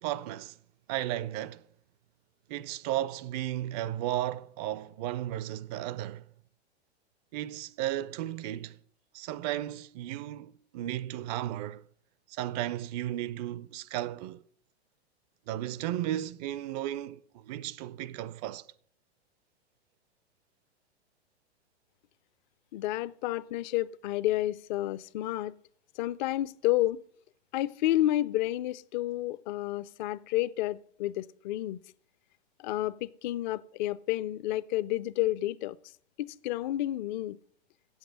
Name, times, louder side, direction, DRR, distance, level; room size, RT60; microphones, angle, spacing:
voice 1, 0.0-0.6 0.9-1.6 2.5-6.2 7.3-8.8 9.1-11.8 12.3-14.4 15.5-18.7, right 13 dB, 40° right, 0.5 m, -34 dB
voice 2, 22.7-25.5 26.0-27.0 27.5-31.8 32.6-35.8 36.2-37.4, left 15 dB, 45° left, 0.5 m, -30 dB
8.2 x 7.9 x 8.9 m
hypercardioid pair, 105°, 33 cm